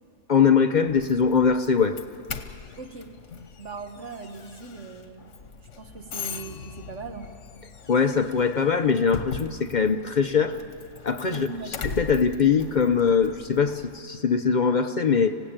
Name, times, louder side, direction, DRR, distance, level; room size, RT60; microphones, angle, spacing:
voice 1, 0.3-2.0 7.9-10.6 11.0-11.5 11.8-15.4, left 6 dB, 45° left, 8 dB, 0.7 m, -22 dB
Doorbell, 0.9-14.0, left 6 dB, 85° left, 1.4 m, -40 dB
voice 2, 2.8-3.2 3.6-7.3 11.3-11.7, right 4 dB, 80° right, 5 dB, 1.8 m, -40 dB
26.0 x 16.5 x 8.8 m, 2.4 s
omnidirectional pair, 1.2 m